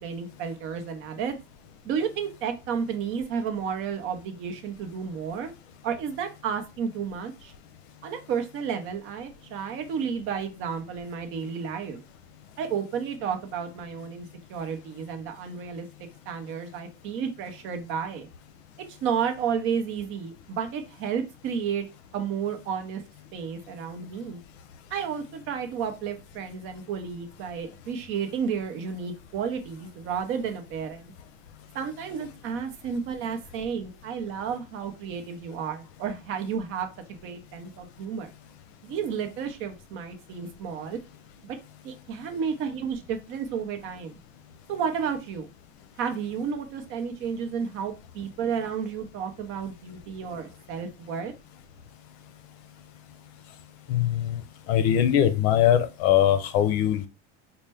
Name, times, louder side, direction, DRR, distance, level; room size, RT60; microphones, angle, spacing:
voice 1, 0.0-1.3 1.8-5.5 5.8-7.5 8.0-12.0 12.6-15.9 16.3-18.3 19.0-21.9 22.1-23.0 23.3-24.4 24.9-31.1 31.7-36.9 37.2-38.3 38.8-41.0 41.4-41.6 41.8-44.2 44.7-45.5 46.0-51.3, right 7 dB, 40° right, 6 dB, 0.7 m, -32 dB
voice 2, 53.9-54.4 54.7-57.1, left 10 dB, 85° left, 11 dB, 0.7 m, -21 dB
4.2 x 2.1 x 3.3 m, 0.28 s
cardioid pair, 170°, 31 cm